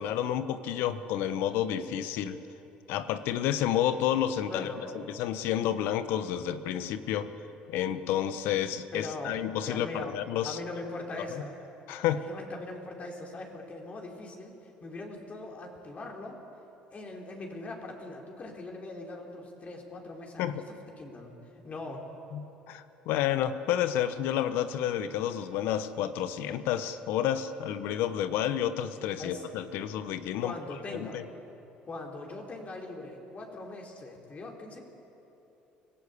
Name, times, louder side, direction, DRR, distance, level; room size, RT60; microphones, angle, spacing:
voice 1, 0.0-2.4 2.9-7.3 7.7-10.6 11.3-11.4 11.9-12.2 20.4-20.6 22.3-30.5 30.9-31.2, left 10 dB, 75° left, 12 dB, 1.2 m, -30 dB
voice 2, 4.5-4.9 8.9-9.4 9.7-10.1 10.4-11.6 12.1-16.4 16.9-20.6 21.0-21.3 21.6-22.1 29.2-29.5 30.4-31.2 31.8-34.8, left 2 dB, 40° left, 0 dB, 4.5 m, -41 dB
25.0 x 16.5 x 8.5 m, 3.0 s
hypercardioid pair, 70°, 4 cm